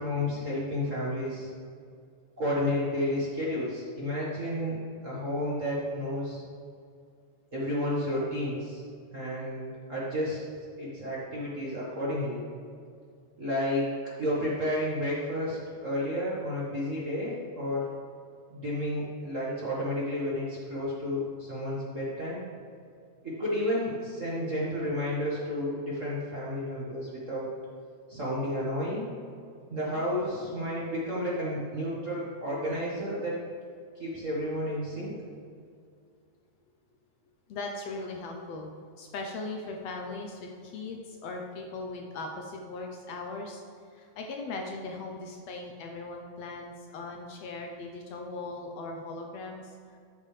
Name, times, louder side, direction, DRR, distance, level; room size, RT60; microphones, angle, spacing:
voice 1, 0.0-1.5 2.4-6.4 7.5-8.8 9.1-10.4 10.8-12.4 13.4-13.9 14.2-17.9 18.5-22.4 23.2-27.5 28.1-29.1 29.7-33.4 33.9-35.1, left 1 dB, 35° right, -7 dB, 1.4 m, -31 dB
voice 2, 29.7-30.0 37.5-38.7 39.0-43.6 43.9-49.7, left 3 dB, 70° left, 2 dB, 1.8 m, -39 dB
13.0 x 7.4 x 3.3 m, 2.3 s
omnidirectional pair, 3.4 m